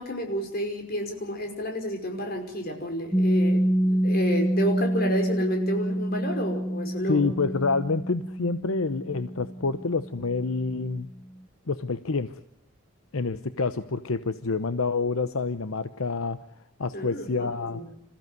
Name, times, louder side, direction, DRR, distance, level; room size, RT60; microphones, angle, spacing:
voice 1, 0.0-7.2 16.9-17.9, equal, 45° left, 3 dB, 5.4 m, -30 dB
Piano, 3.1-10.4, right 1 dB, 5° left, 1.6 m, -27 dB
voice 2, 7.1-11.1 11.7-12.4 13.1-16.4 16.8-17.8, left 4 dB, 80° left, 11 dB, 0.9 m, -27 dB
27.0 x 15.5 x 9.4 m, 0.80 s
head